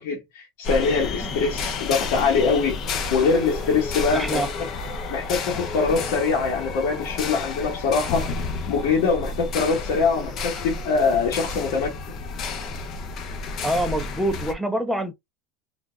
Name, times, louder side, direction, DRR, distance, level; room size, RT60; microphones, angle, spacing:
voice 1, 0.0-2.8 3.1-4.4 5.1-8.3 8.7-11.9, left 5 dB, 65° left, 1.3 m, -23 dB
sound 1, 0.6-14.5, left 4 dB, 40° left, 0.7 m, -31 dB
voice 2, 4.1-4.5 13.6-15.1, right 1 dB, ahead, 0.7 m, -26 dB
3.8 x 2.4 x 2.2 m
supercardioid pair, 140°, 0 cm